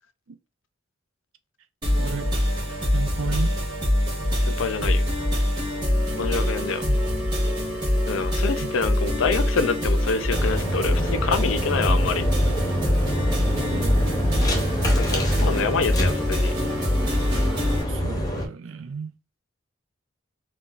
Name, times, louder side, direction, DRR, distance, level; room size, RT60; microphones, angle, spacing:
sound 1, 1.8-17.8, left 1 dB, 25° right, 1.7 m, -24 dB
voice 1, 1.9-2.3 2.9-3.6 6.9-7.0 8.6-8.7 13.5-14.6 17.9-19.1, right 5 dB, 90° right, 0.4 m, -34 dB
voice 2, 4.4-5.0 6.2-6.8 8.1-12.2 14.9-16.5, left 5 dB, 75° left, 0.4 m, -26 dB
sound 2, 10.3-18.5, equal, 20° left, 0.7 m, -27 dB
3.9 x 2.2 x 2.4 m
head